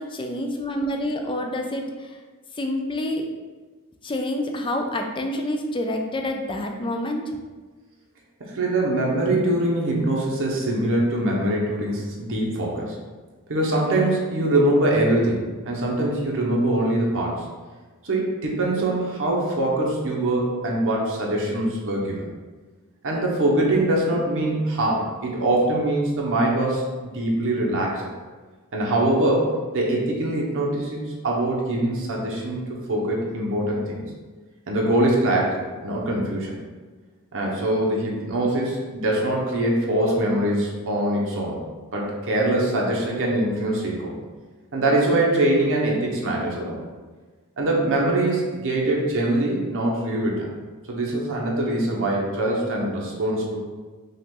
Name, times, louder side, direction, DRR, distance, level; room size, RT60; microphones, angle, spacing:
voice 1, 0.0-2.2 2.5-3.2 4.0-7.3, left 1 dB, 20° left, 3 dB, 0.5 m, -27 dB
voice 2, 8.4-13.0 13.5-17.5 18.0-22.2 23.0-28.1 28.7-34.0 34.7-36.5 37.3-41.6 41.9-44.1 44.7-46.8 47.6-50.4 50.9-53.6, right 1 dB, 60° right, -2 dB, 0.9 m, -23 dB
5.5 x 2.5 x 3.8 m, 1.3 s
head